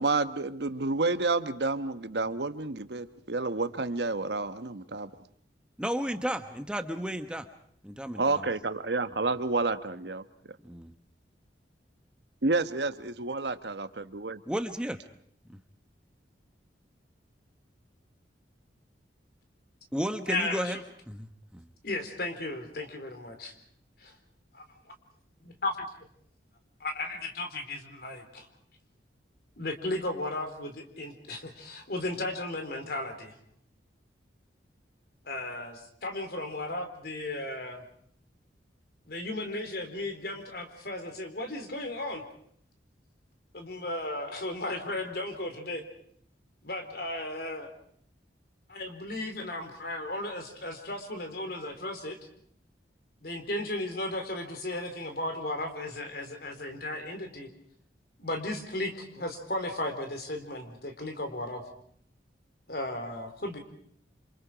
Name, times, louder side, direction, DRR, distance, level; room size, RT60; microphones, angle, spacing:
voice 1, 0.0-5.1 8.1-10.2 12.4-14.4, right 3 dB, 65° right, 11 dB, 1.1 m, -30 dB
voice 2, 5.8-7.5 7.8-8.5 10.7-10.9 14.5-15.0 15.5-15.6 19.9-20.8 21.1-21.6, equal, 5° right, 8 dB, 1.0 m, -33 dB
voice 3, 20.3-20.7 21.8-23.5 24.0-24.1 24.5-24.6 25.4-26.1 26.8-28.5 29.6-33.4 35.3-37.8 39.1-42.2 43.5-45.8 46.6-47.7 48.7-52.2 53.2-57.5 58.2-61.6 62.7-63.6, left 2 dB, 55° left, 6 dB, 4.0 m, -35 dB
28.5 x 26.5 x 5.0 m, 0.64 s
head